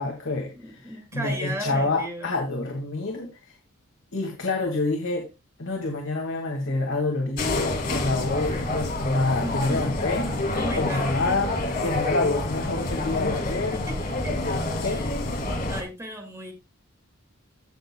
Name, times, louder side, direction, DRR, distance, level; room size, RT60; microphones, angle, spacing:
voice 1, 0.0-3.5 4.1-5.3 5.6-10.3 10.7-13.8 14.3-15.0, left 2 dB, 60° left, 1 dB, 2.0 m, -27 dB
voice 2, 0.5-2.3 9.4-10.0 10.6-11.2 13.7-14.0 14.2-14.3 14.8-15.2 15.7-16.5, equal, 15° right, 2 dB, 2.2 m, -35 dB
sound 1, 7.4-15.8, left 2 dB, 40° left, 2.0 m, -28 dB
16.0 x 6.5 x 2.2 m, 0.24 s
head